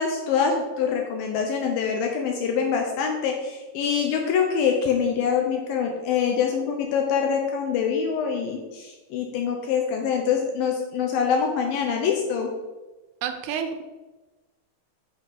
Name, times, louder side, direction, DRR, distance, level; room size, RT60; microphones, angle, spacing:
voice 1, 0.0-12.5, left 6 dB, 80° left, 2 dB, 2.2 m, -25 dB
voice 2, 13.2-13.8, right 7 dB, 85° right, 7 dB, 2.6 m, -29 dB
8.7 x 5.9 x 3.5 m, 1.2 s
omnidirectional pair, 4.7 m